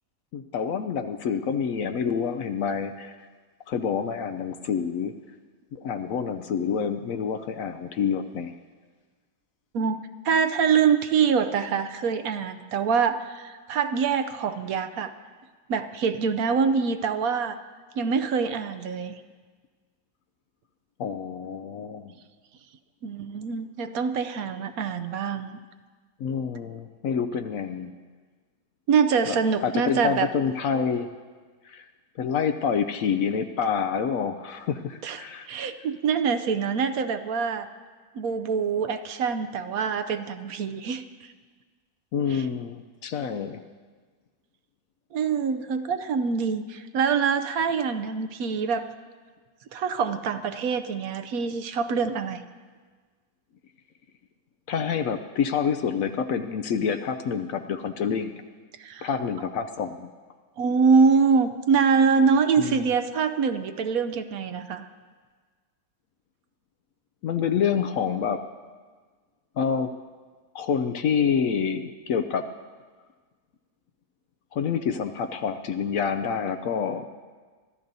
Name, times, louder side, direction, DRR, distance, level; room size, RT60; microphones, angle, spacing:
voice 1, 0.3-3.2 3.7-5.1 5.7-8.5 21.0-22.1 26.2-27.9 29.3-29.4 29.6-31.1 31.6-31.8 32.2-35.5 42.1-43.6 54.7-58.4 59.0-60.1 62.6-62.9 67.2-68.4 69.6-69.9 70.5-72.5 74.5-77.1, left 7 dB, 65° left, 8 dB, 0.9 m, -27 dB
voice 2, 10.2-15.1 15.7-17.6 18.0-19.1 23.0-25.5 28.9-30.3 35.0-37.7 38.2-41.0 42.3-42.4 45.1-48.9 49.7-52.4 58.8-59.1 60.6-64.9, right 5 dB, 70° right, 9 dB, 1.0 m, -24 dB
25.0 x 14.0 x 2.7 m, 1.5 s
omnidirectional pair, 1.7 m